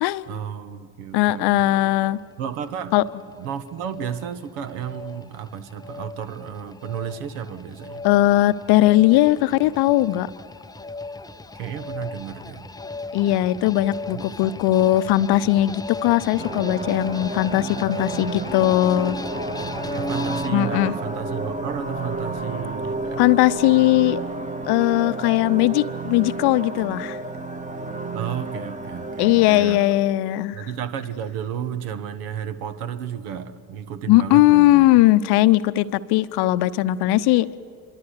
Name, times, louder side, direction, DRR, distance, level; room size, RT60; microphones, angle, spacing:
voice 1, 0.3-1.8 2.4-3.0 3.4-8.1 11.5-12.7 14.1-14.2 19.6-23.5 28.1-29.9 30.5-35.0, right 8 dB, 65° right, 13 dB, 1.4 m, -33 dB
voice 2, 1.1-2.2 2.9-3.0 8.0-10.3 13.1-19.2 20.5-20.9 23.2-24.2 24.7-27.2 29.2-30.6 34.1-37.6, left 15 dB, 50° left, 15 dB, 0.8 m, -19 dB
sound 1, 1.8-20.5, left 3 dB, 10° left, 0.6 m, -37 dB
sound 2, 16.4-29.5, right 2 dB, 15° right, 1.6 m, -31 dB
26.0 x 22.5 x 8.2 m, 2.2 s
figure-of-eight pair, 50°, 50 cm